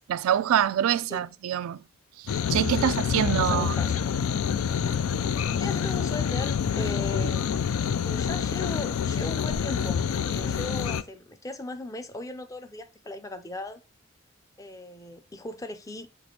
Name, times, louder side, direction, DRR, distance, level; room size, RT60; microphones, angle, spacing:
voice 1, 0.1-1.8 2.2-3.7, right 10 dB, 85° right, 0.3 m, -25 dB
sound 1, 2.3-11.0, left 7 dB, 85° left, 0.4 m, -27 dB
voice 2, 3.3-3.9 5.4-7.7 8.0-13.8 14.6-16.1, left 2 dB, 15° left, 0.4 m, -38 dB
5.9 x 2.9 x 2.8 m
head